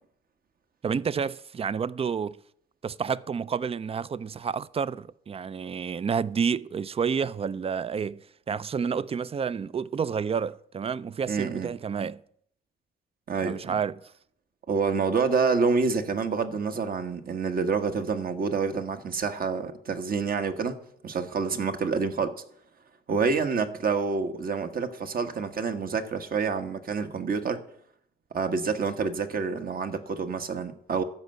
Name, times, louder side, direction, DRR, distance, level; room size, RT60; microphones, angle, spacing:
voice 1, 0.8-2.4 2.8-8.2 8.5-12.2 13.4-14.0, right 6 dB, 30° right, 0.4 m, -29 dB
voice 2, 11.3-11.7 13.3-13.8 14.7-22.4 23.1-27.6 28.3-31.0, right 5 dB, 45° right, 1.3 m, -28 dB
13.5 x 5.4 x 8.0 m
cardioid pair, 90°, 20 cm